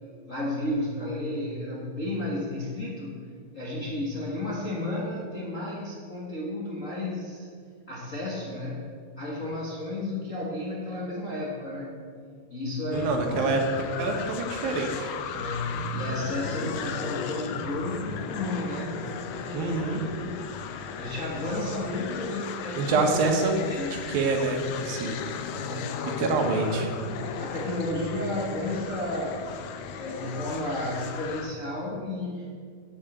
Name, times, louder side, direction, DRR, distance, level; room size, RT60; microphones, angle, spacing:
voice 1, 0.0-3.1 3.5-7.5 7.9-8.9 9.2-11.9 12.5-13.6 15.4-23.1 23.4-23.9 25.6-26.1 27.2-29.4 30.0-32.5, left 1 dB, 45° left, -4 dB, 1.0 m, -33 dB
sound 1, 12.9-31.6, left 6 dB, 85° left, 1.5 m, -36 dB
voice 2, 12.9-13.6 14.0-15.1 19.5-20.0 22.8-23.6 23.9-25.2 26.0-26.9, right 3 dB, 90° right, 3 dB, 3.1 m, -26 dB
8.6 x 8.2 x 7.9 m, 2.1 s
omnidirectional pair, 4.0 m